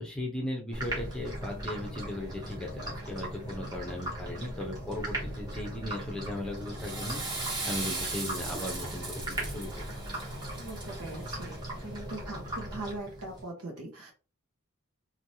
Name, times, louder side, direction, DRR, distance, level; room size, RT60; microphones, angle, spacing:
voice 1, 0.0-9.9, left 1 dB, 5° left, -1 dB, 0.8 m, -37 dB
sound 1, 0.7-13.4, right 1 dB, 20° right, 1.1 m, -39 dB
Water / Toilet flush, 6.6-11.8, right 3 dB, 50° right, 1.8 m, -38 dB
voice 2, 10.6-11.6 11.8-14.1, right 2 dB, 80° right, 1 dB, 1.1 m, -40 dB
3.2 x 2.8 x 2.8 m, 0.32 s
head